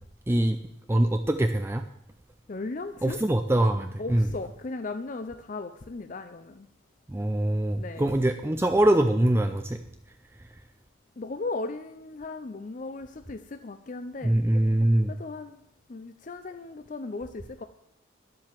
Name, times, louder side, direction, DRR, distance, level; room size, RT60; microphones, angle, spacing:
voice 1, 0.9-1.8 3.0-4.3 7.1-9.8 14.2-15.1, right 1 dB, 10° right, 7 dB, 0.4 m, -23 dB
voice 2, 2.5-3.2 4.0-6.7 7.8-8.2 11.2-14.4 15.1-15.6 15.9-17.6, left 3 dB, 40° left, 9 dB, 0.5 m, -37 dB
11.0 x 7.6 x 7.3 m, 0.77 s
head